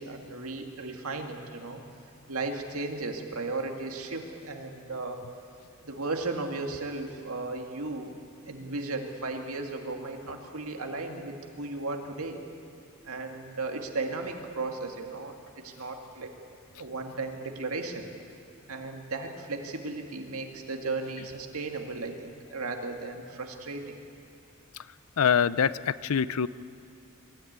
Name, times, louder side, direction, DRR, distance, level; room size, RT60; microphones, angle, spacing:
voice 1, 0.0-1.8 2.3-5.2 5.8-8.2 8.5-12.4 13.0-15.3 15.6-16.3 16.8-18.1 18.7-24.0, right 3 dB, 85° right, 3 dB, 2.1 m, -35 dB
voice 2, 25.2-26.5, left 7 dB, 75° left, 17 dB, 0.5 m, -24 dB
23.5 x 13.5 x 9.5 m, 2.4 s
head